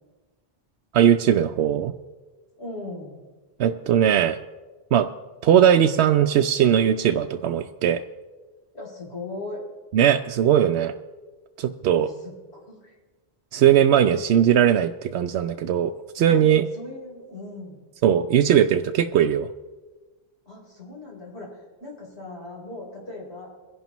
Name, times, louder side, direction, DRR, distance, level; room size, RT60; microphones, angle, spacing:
voice 1, 0.9-1.9 3.6-4.4 4.9-5.1 5.4-8.0 9.9-10.9 11.6-12.1 13.5-16.6 18.0-19.5, right 9 dB, 85° right, 6 dB, 0.8 m, -19 dB
voice 2, 2.6-3.2 8.7-9.6 12.0-12.9 16.2-17.8 20.5-23.5, left 2 dB, 80° left, -3 dB, 4.3 m, -38 dB
23.0 x 11.0 x 3.0 m, 1.3 s
omnidirectional pair, 1.1 m